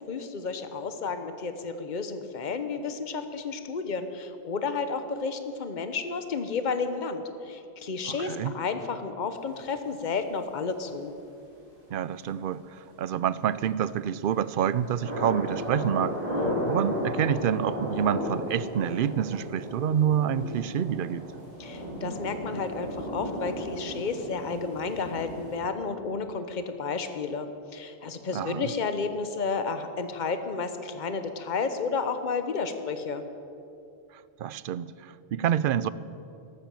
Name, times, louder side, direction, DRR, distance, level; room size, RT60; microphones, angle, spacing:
voice 1, 0.0-11.1 21.6-33.2, left 4 dB, 45° left, 9 dB, 1.1 m, -32 dB
voice 2, 8.1-8.5 11.9-16.2 16.7-21.3 28.3-28.7 34.4-35.9, right 9 dB, 60° right, 16 dB, 0.6 m, -27 dB
sound 1, 14.5-25.6, equal, 30° right, 4.4 m, -34 dB
13.5 x 12.5 x 7.6 m, 2.7 s
omnidirectional pair, 1.2 m